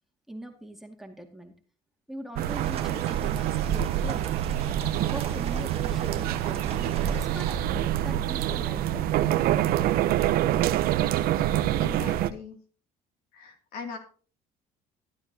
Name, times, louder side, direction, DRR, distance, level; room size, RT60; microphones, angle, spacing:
voice 1, 0.3-1.5 2.1-4.3 4.9-7.5 8.0-9.3, right 1 dB, ahead, 2 dB, 2.2 m, -42 dB
sound 1, 2.4-12.3, right 12 dB, 70° right, 0.8 m, -26 dB
sound 2, 2.5-7.6, right 7 dB, 35° right, 1.7 m, -40 dB
voice 2, 11.8-12.6 13.3-14.0, left 5 dB, 65° left, 4 dB, 2.6 m, -40 dB
13.0 x 11.5 x 2.9 m, 0.39 s
supercardioid pair, 95°, 16 cm